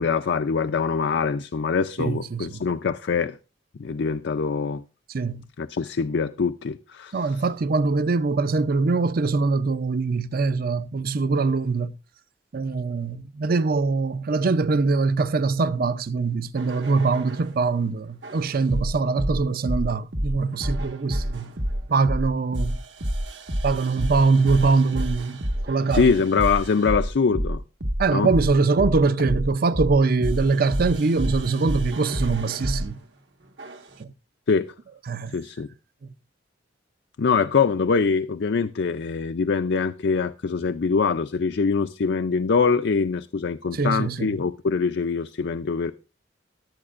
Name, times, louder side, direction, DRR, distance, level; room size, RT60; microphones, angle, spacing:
voice 1, 0.0-3.4 3.8-4.8 5.6-7.4 25.9-27.6 28.1-28.3 34.5-34.7 35.3-35.7 37.2-45.9, left 5 dB, 65° left, 0.5 m, -23 dB
voice 2, 2.0-2.6 5.1-5.4 7.1-12.0 12.5-21.5 21.9-22.8 23.6-26.1 28.0-33.0 34.0-34.1 35.1-35.4 43.7-44.4, right 4 dB, 50° right, 0.6 m, -23 dB
sound 1, 16.6-17.5 18.2-32.9 33.6-34.0, equal, 75° right, 1.5 m, -29 dB
19.5 x 8.6 x 2.5 m
head